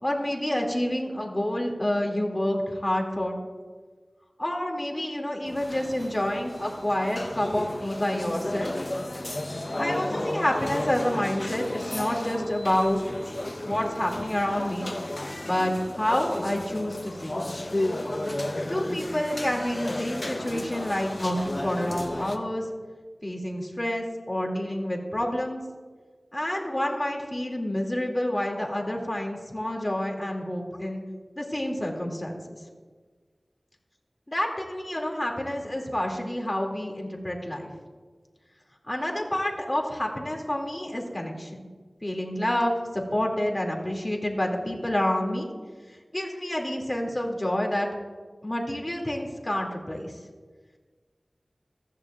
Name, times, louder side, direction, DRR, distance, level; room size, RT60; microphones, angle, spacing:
voice 1, 0.0-3.4 4.4-8.7 9.8-13.2 13.6-14.9 15.4-17.5 18.7-22.6 23.2-25.6 26.3-31.0 31.4-32.6 34.3-37.7 38.9-41.5 42.0-45.5 46.1-47.9 48.4-50.1, left 1 dB, 25° left, 0 dB, 2.5 m, -28 dB
sound 1, 5.5-22.4, left 1 dB, 45° left, 1.0 m, -33 dB
15.0 x 14.5 x 2.5 m, 1.5 s
wide cardioid pair, 45°, 0 cm